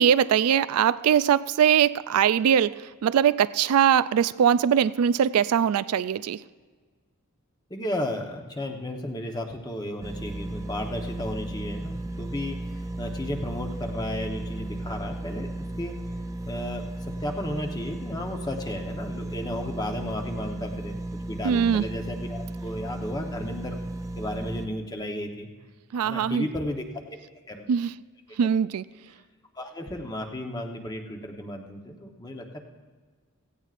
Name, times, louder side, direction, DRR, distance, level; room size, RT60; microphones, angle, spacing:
voice 1, 0.0-6.4 21.4-21.9 25.9-26.5 27.7-27.9 28.4-28.8, right 8 dB, 90° right, 16 dB, 0.3 m, -21 dB
voice 2, 7.7-12.6 13.0-16.0 16.4-16.9 17.2-20.9 21.2-23.8 24.2-25.5 26.0-27.2 27.5-27.7 29.6-32.4, left 1 dB, 20° left, 3 dB, 1.0 m, -33 dB
sound 1, 10.0-24.7, right 1 dB, 15° right, 0.4 m, -35 dB
17.0 x 15.5 x 2.5 m, 1.5 s
head